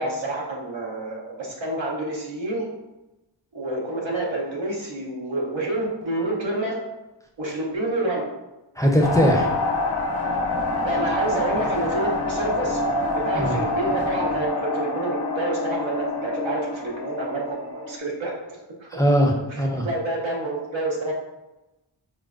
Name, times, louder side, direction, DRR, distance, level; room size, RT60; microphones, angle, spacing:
voice 1, 0.0-2.7 3.5-6.8 7.4-8.3 10.7-12.8 13.1-18.3 18.8-18.9 19.5-21.1, right 2 dB, 90° right, -2 dB, 0.8 m, -28 dB
voice 2, 8.8-9.6 13.4-13.6 18.9-19.9, equal, 10° left, 0 dB, 0.4 m, -20 dB
sound 1, 9.0-18.0, left 2 dB, 55° left, 0.6 m, -26 dB
4.5 x 2.1 x 2.4 m, 1.0 s
wide cardioid pair, 50°, 45 cm